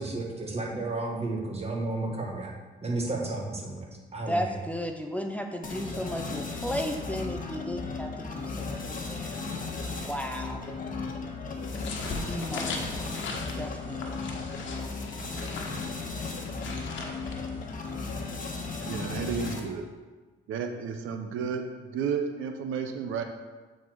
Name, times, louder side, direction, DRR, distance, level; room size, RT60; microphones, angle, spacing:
voice 1, 0.0-2.5 2.8-4.6, right 2 dB, 30° right, 0 dB, 1.6 m, -32 dB
voice 2, 4.3-9.4 10.0-10.7 12.1-13.2 13.6-14.2, equal, 5° left, 3 dB, 0.6 m, -35 dB
sound 1, 5.6-19.8, left 3 dB, 45° left, 1.3 m, -35 dB
sound 2, 11.6-17.9, left 3 dB, 70° left, 1.2 m, -39 dB
voice 3, 18.9-19.8 20.5-23.2, right 6 dB, 85° right, 6 dB, 0.7 m, -32 dB
8.2 x 4.3 x 4.5 m, 1.3 s
cardioid pair, 90°, 20 cm